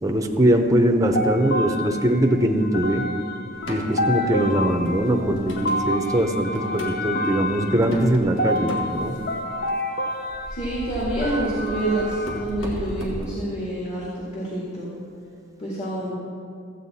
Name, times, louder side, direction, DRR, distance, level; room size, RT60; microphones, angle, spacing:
voice 1, 0.0-3.0 3.7-9.1, right 1 dB, 15° right, 3 dB, 0.7 m, -21 dB
sound 1, 1.1-12.4, left 1 dB, 45° left, 0.8 m, -29 dB
sound 2, 3.5-3.9 4.5-5.8 6.2-6.9 7.2-7.3 7.7-9.6 10.2-13.3, equal, 75° left, 1.7 m, -35 dB
voice 2, 10.5-14.9 15.6-16.1, right 1 dB, 30° left, -6 dB, 1.9 m, -27 dB
14.5 x 8.3 x 4.2 m, 2.4 s
head